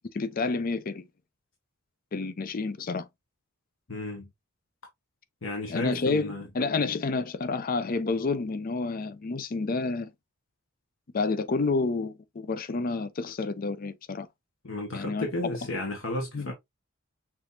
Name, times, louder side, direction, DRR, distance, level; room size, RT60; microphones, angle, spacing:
voice 1, 0.1-1.1 2.1-3.1 5.7-10.1 11.1-14.3 14.9-15.3 16.3-16.5, left 3 dB, 40° left, 0.4 m, -29 dB
voice 2, 3.9-4.3 5.4-6.4 14.6-16.5, left 2 dB, 60° left, 1.3 m, -33 dB
6.1 x 2.9 x 2.6 m
head